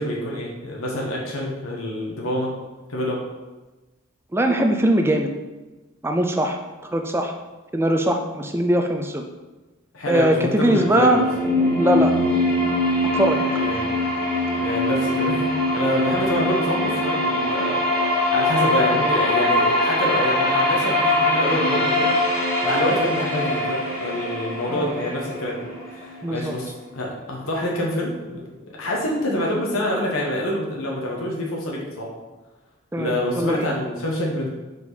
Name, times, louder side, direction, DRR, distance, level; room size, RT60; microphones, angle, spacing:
voice 1, 0.0-2.5 2.9-3.2 9.9-11.2 13.5-13.8 14.6-17.8 18.3-22.1 22.6-28.4 28.8-32.1 33.0-34.5, left 1 dB, 90° left, -3 dB, 1.3 m, -26 dB
voice 2, 4.3-5.3 6.0-6.6 6.9-7.3 7.7-9.2 10.1-11.2 11.7-12.1 13.1-13.7 24.7-24.9 26.2-26.5 32.9-33.7, right 1 dB, 10° right, 4 dB, 0.5 m, -21 dB
sound 1, 10.3-26.3, left 1 dB, 15° left, 1.7 m, -22 dB
5.3 x 4.9 x 4.1 m, 1.2 s
head